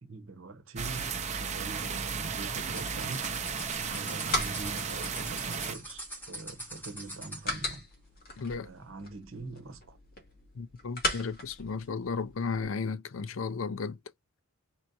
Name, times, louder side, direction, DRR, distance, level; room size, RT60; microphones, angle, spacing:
voice 1, 0.0-3.3 3.8-7.8 8.5-10.0, right 3 dB, 65° right, 1.1 m, -43 dB
sound 1, 0.8-5.7, right 6 dB, 35° right, 0.8 m, -34 dB
sound 2, 2.7-7.5, right 1 dB, 10° left, 2.7 m, -44 dB
sound 3, 3.7-12.6, left 1 dB, 45° left, 2.3 m, -39 dB
voice 2, 8.4-8.7 10.6-14.0, left 5 dB, 65° left, 0.5 m, -34 dB
4.4 x 4.3 x 2.6 m
head